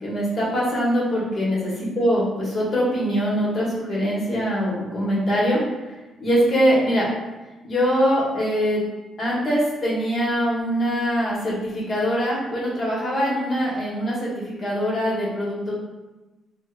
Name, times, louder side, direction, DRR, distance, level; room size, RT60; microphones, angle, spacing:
voice 1, 0.0-2.2 2.5-5.6 6.2-7.1 7.6-8.8 9.2-15.7, equal, 45° left, -5 dB, 1.1 m, -23 dB
3.3 x 2.7 x 2.4 m, 1.1 s
cardioid pair, 90°, 0 cm